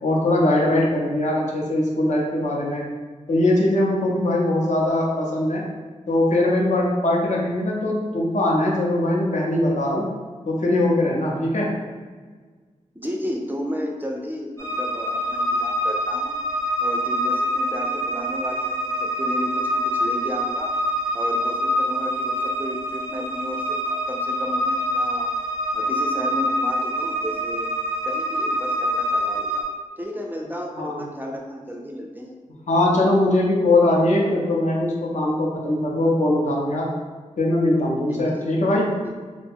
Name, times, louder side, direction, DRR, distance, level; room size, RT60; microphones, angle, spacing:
voice 1, 0.0-2.9 3.3-5.6 6.1-10.1 10.5-11.7 30.8-31.0 32.7-36.9 37.4-39.0, left 1 dB, 65° left, -3 dB, 0.7 m, -21 dB
voice 2, 12.9-16.3 16.8-20.7 21.1-25.3 25.7-27.7 28.0-29.7 30.0-32.3 38.1-38.5, equal, 15° right, 0 dB, 0.4 m, -33 dB
sound 1, 14.6-29.6, equal, 20° left, 0.8 m, -25 dB
2.5 x 2.2 x 3.4 m, 1.5 s
wide cardioid pair, 75°, 13 cm